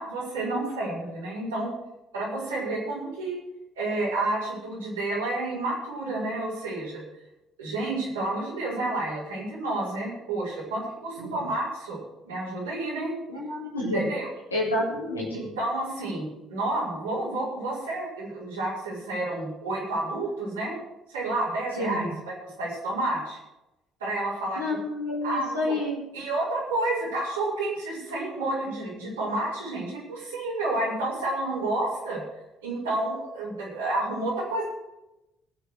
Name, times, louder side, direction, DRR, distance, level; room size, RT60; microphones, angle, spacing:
voice 1, 0.0-1.7 2.1-3.4 3.8-7.0 7.6-12.0 12.2-13.1 13.9-14.3 15.3-20.8 21.1-23.4 24.0-24.6 25.2-25.7 26.1-32.2 32.6-34.6, right 2 dB, 80° right, -8 dB, 5.4 m, -30 dB
voice 2, 11.2-11.5 13.3-14.1 14.5-15.5 21.8-22.1 24.6-26.0, left 1 dB, 85° left, -7 dB, 3.6 m, -29 dB
19.0 x 6.7 x 6.5 m, 0.94 s
figure-of-eight pair, 50°, 0 cm